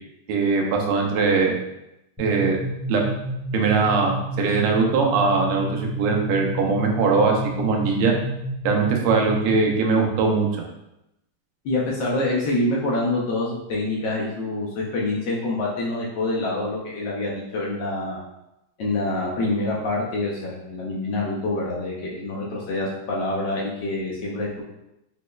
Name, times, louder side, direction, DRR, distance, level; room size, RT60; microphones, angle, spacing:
voice 1, 0.3-1.6 2.2-2.6 2.9-3.0 3.5-8.1 8.6-10.5, right 4 dB, 90° right, 1 dB, 1.6 m, -21 dB
sound 1, 2.2-9.7, equal, 5° right, 0.7 m, -30 dB
voice 2, 11.6-18.2 18.8-24.6, left 2 dB, 70° left, -4 dB, 1.1 m, -26 dB
5.1 x 2.1 x 2.2 m, 0.88 s
omnidirectional pair, 2.4 m